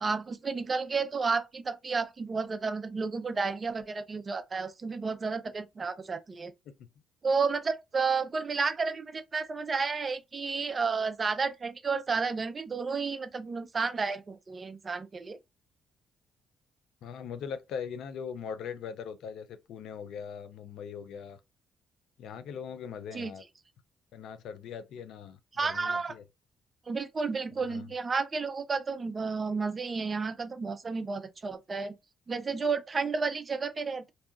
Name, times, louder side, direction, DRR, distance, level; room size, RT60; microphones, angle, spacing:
voice 1, 0.0-6.5 7.2-15.4 23.1-23.3 25.6-26.1 26.9-31.9 32.3-34.1, right 4 dB, 35° right, 0.4 m, -31 dB
voice 2, 17.0-21.4 22.2-23.4 24.1-26.2 27.7-27.9, left 7 dB, 80° left, 0.4 m, -41 dB
2.7 x 2.3 x 2.4 m
cardioid pair, 90°, 0 cm